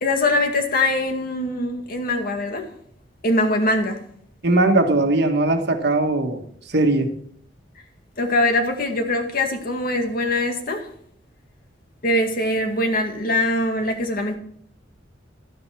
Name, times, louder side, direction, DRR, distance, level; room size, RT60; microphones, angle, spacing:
voice 1, 0.0-2.6 3.2-4.0 8.2-10.9 12.0-14.4, left 1 dB, 55° left, 4 dB, 2.2 m, -22 dB
voice 2, 4.4-6.4 6.7-7.1, right 2 dB, 60° right, 5 dB, 1.6 m, -19 dB
13.0 x 10.0 x 4.7 m, 0.65 s
head